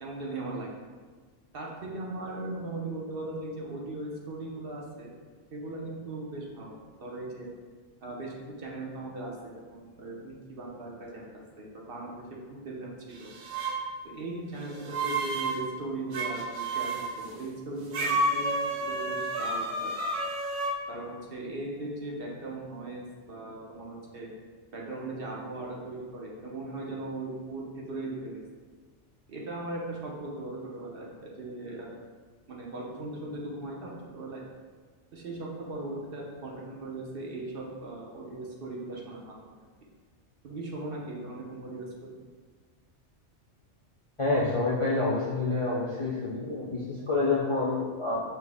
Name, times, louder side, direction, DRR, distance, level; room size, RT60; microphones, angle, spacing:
voice 1, 0.0-0.8 1.5-5.1 5.5-7.5 8.0-12.2 12.5-13.3 14.0-19.9 20.9-24.3 24.7-28.4 29.3-32.0 32.5-34.4 35.1-39.5 40.4-42.2, right 2 dB, 55° right, -3 dB, 0.9 m, -38 dB
sound 1, 13.2-13.8 14.6-15.6 16.1-17.1 17.9-20.7, right 2 dB, 90° right, 1.0 m, -30 dB
voice 2, 44.2-48.2, left 3 dB, 45° left, -6 dB, 0.4 m, -28 dB
6.0 x 2.1 x 3.4 m, 1.4 s
omnidirectional pair, 1.2 m